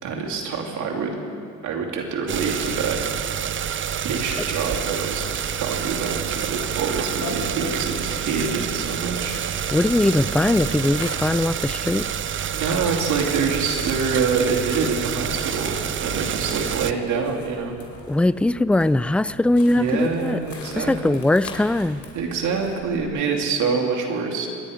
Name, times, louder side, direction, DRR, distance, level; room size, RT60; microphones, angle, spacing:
voice 1, 0.0-1.2 1.6-3.0 4.0-5.2 5.5-9.7 12.5-17.8 19.6-21.2 22.1-24.5, right 5 dB, 75° right, 0 dB, 2.7 m, -26 dB
sound 1, 2.3-16.9, right 9 dB, 40° right, 0.6 m, -28 dB
sound 2, 5.1-23.1, left 4 dB, 70° left, 3.1 m, -42 dB
voice 2, 9.7-12.1 18.1-20.4 20.7-22.0, left 1 dB, 5° left, 16 dB, 0.3 m, -20 dB
25.0 x 10.5 x 5.0 m, 2.4 s
cardioid pair, 90°, 30 cm